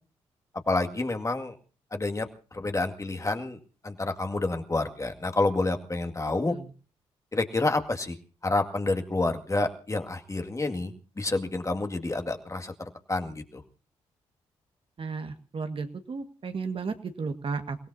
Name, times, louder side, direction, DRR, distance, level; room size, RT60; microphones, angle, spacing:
voice 1, 0.7-1.6 1.9-6.6 7.3-8.2 8.4-12.7 13.1-13.6, left 2 dB, 25° left, 5 dB, 2.1 m, -29 dB
voice 2, 15.0-17.8, right 4 dB, 50° right, 7 dB, 1.7 m, -33 dB
29.0 x 17.0 x 2.8 m, 0.36 s
supercardioid pair, 50°, 12 cm